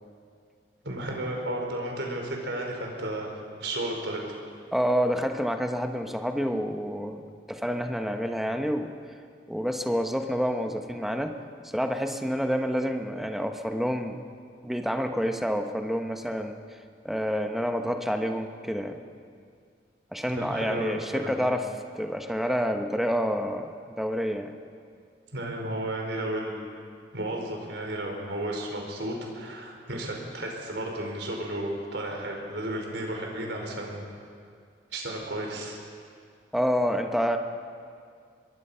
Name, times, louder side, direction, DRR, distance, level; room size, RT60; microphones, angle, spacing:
voice 1, 0.8-3.3 3.6-4.4 20.3-21.4 25.3-26.6 27.1-34.1 34.9-35.8, right 1 dB, 75° right, 1 dB, 4.8 m, -33 dB
voice 2, 4.7-8.9 9.5-11.3 11.7-14.2 14.6-16.6 17.0-19.0 20.1-21.7 21.9-24.6 36.5-37.4, equal, ahead, 5 dB, 1.1 m, -28 dB
24.0 x 22.5 x 5.7 m, 2.3 s
head